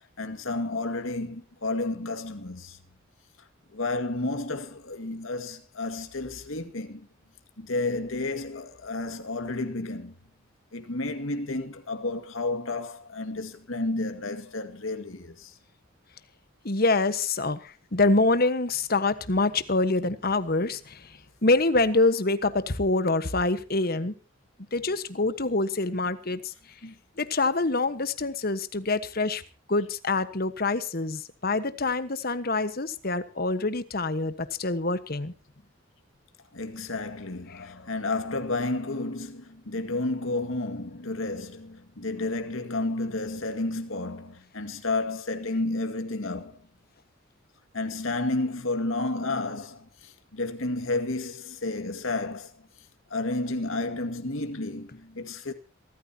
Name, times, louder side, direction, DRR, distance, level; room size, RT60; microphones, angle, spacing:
voice 1, 0.2-2.8 3.7-7.1 7.6-10.1 10.7-15.5 36.5-46.5 47.7-52.5 53.1-55.5, left 2 dB, 80° left, 2.1 m, -31 dB
voice 2, 16.6-21.0 21.4-24.1 24.7-26.5 26.8-29.4 29.7-35.3, left 3 dB, 45° left, 1.3 m, -26 dB
27.0 x 13.5 x 2.9 m
head